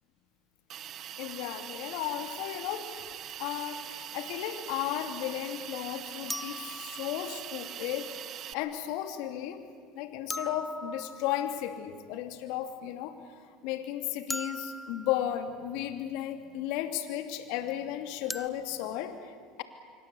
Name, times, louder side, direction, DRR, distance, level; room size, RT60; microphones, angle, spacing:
Hiss, 0.7-8.5, right 11 dB, 50° right, 1.1 m, -42 dB
voice 1, 1.2-2.9 3.4-8.3 8.5-9.6 9.9-13.2 13.6-19.6, left 11 dB, 70° left, 7 dB, 2.8 m, -34 dB
sound 1, 2.9-3.0 6.3-7.6 10.3-11.7 14.3-15.5 18.3-18.5, left 1 dB, 5° left, 1.0 m, -40 dB
26.5 x 24.5 x 8.6 m, 2.1 s
hypercardioid pair, 85°, 0 cm